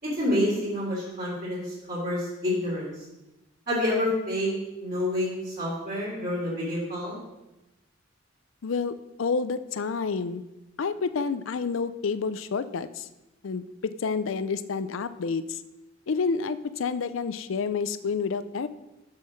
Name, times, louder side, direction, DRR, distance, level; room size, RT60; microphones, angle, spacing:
voice 1, 0.0-2.9 3.7-4.5 4.8-7.2, left 1 dB, 45° right, -10 dB, 3.4 m, -28 dB
voice 2, 8.6-10.4 10.8-13.1 13.4-15.6 16.1-18.7, left 5 dB, 75° left, 13 dB, 0.5 m, -29 dB
7.5 x 5.6 x 6.4 m, 0.98 s
head